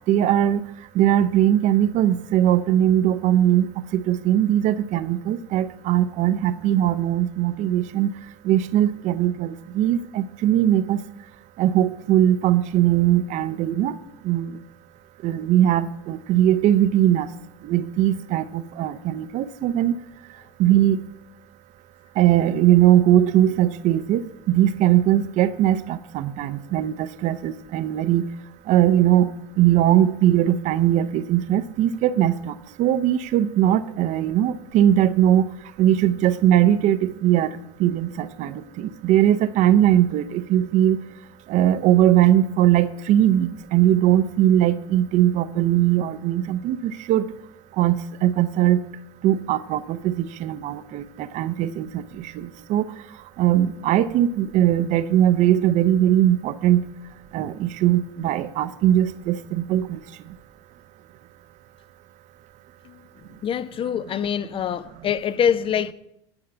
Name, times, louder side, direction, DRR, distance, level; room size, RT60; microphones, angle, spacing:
voice 1, 0.1-0.6 0.9-8.1 8.4-11.0 11.6-13.9 14.2-14.6 15.2-17.3 17.6-19.9 20.6-21.0 22.2-28.2 28.7-29.3 29.6-35.5 35.8-37.5 37.8-41.0 41.5-47.2 47.8-48.8 49.2-52.8 53.4-56.8 57.3-60.0, right 12 dB, 55° right, 0.7 m, -20 dB
voice 2, 63.4-65.9, left 8 dB, 35° left, 0.6 m, -24 dB
10.5 x 5.7 x 6.7 m
hypercardioid pair, 80°, 15 cm